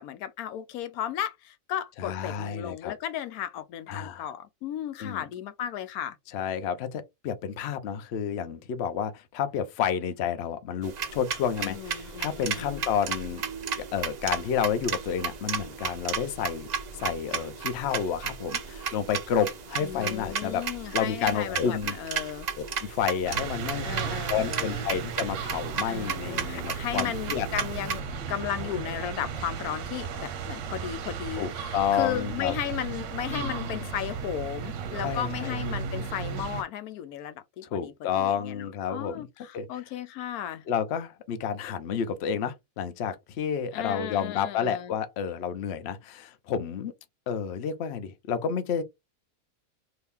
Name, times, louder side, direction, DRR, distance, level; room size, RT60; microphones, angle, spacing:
voice 1, 0.0-6.2 11.6-12.9 19.8-22.5 23.8-24.9 25.9-40.6 43.7-44.9, left 10 dB, 90° left, 1.1 m, -35 dB
voice 2, 2.0-2.9 3.9-4.3 5.0-5.2 6.3-13.4 13.8-20.6 20.9-22.0 22.8-23.9 24.3-27.5 31.4-32.5 33.3-33.9 35.0-35.6 37.6-39.3 39.5-39.7 40.7-46.9 47.3-48.8, left 8 dB, 60° left, 0.8 m, -30 dB
sound 1, 10.8-28.0, right 6 dB, 85° right, 0.3 m, -34 dB
sound 2, 23.2-36.6, right 6 dB, 65° right, 0.9 m, -35 dB
2.9 x 2.7 x 3.4 m
omnidirectional pair, 1.5 m